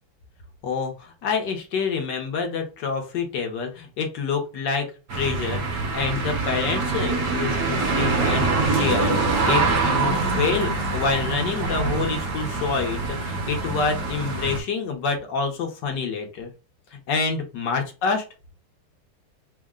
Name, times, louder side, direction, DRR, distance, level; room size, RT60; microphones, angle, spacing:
voice 1, 0.6-16.5 16.9-18.2, left 5 dB, 70° left, 3 dB, 1.4 m, -27 dB
sound 1, 5.1-14.6, right 3 dB, 50° right, 1.1 m, -24 dB
3.6 x 2.1 x 3.5 m, 0.30 s
omnidirectional pair, 2.1 m